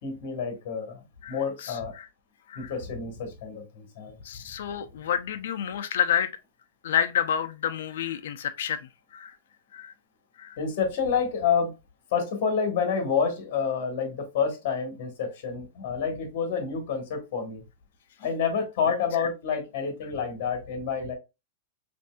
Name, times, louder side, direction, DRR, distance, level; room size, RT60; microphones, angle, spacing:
voice 1, 0.0-1.9 2.5-4.2 10.6-11.7 12.1-17.6 18.2-21.1, left 6 dB, 40° left, 1.3 m, -28 dB
voice 2, 1.2-2.1 2.5-2.7 4.2-6.3 6.8-9.4 9.7-9.9 10.4-10.6, left 9 dB, 70° left, 0.5 m, -29 dB
5.2 x 2.6 x 2.3 m
supercardioid pair, 180°, 0 cm